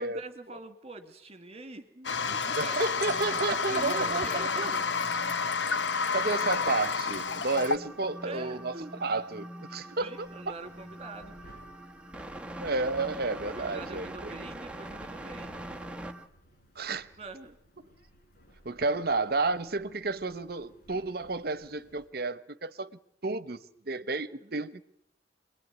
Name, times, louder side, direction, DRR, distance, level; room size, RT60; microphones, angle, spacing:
voice 1, 0.0-2.8 3.5-4.9 8.2-8.9 10.0-11.5 13.5-15.9 17.2-17.6 24.4-24.6, right 3 dB, 35° right, 2.3 m, -44 dB
Toilet flush, 2.0-7.8, left 5 dB, 70° left, 1.0 m, -30 dB
voice 2, 2.6-4.7 5.7-5.8 6.1-10.3 12.6-14.5 16.8-17.1 17.8-17.9 18.6-22.9 23.2-23.6 23.9-24.8, right 3 dB, 55° right, 1.1 m, -31 dB
sound 1, 3.0-16.3, right 1 dB, 5° right, 1.3 m, -44 dB
sound 2, 10.1-22.1, equal, 55° left, 5.0 m, -60 dB
27.0 x 21.5 x 9.4 m
head